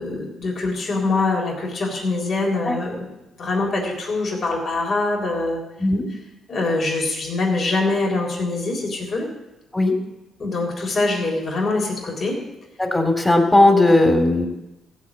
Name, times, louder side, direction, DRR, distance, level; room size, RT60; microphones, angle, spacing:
voice 1, 0.0-5.6 6.5-9.3 10.4-12.4, left 3 dB, 50° left, -1 dB, 3.8 m, -24 dB
voice 2, 12.8-14.5, left 2 dB, 15° left, 5 dB, 2.7 m, -16 dB
15.5 x 5.3 x 8.5 m, 0.97 s
supercardioid pair, 70°, 0 cm